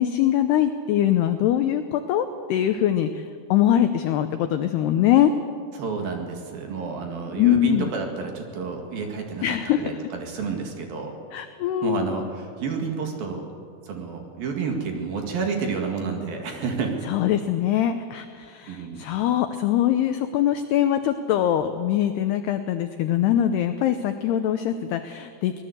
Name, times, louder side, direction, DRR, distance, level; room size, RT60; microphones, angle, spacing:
voice 1, 0.0-3.3 3.5-5.3 7.4-7.9 9.4-9.8 11.3-12.1 17.1-25.6, left 11 dB, 85° left, 8 dB, 2.3 m, -22 dB
voice 2, 5.7-11.2 11.8-13.5 13.8-17.0 18.6-19.1, right 5 dB, 55° right, 3 dB, 3.4 m, -30 dB
24.0 x 19.0 x 8.0 m, 2.2 s
omnidirectional pair, 5.7 m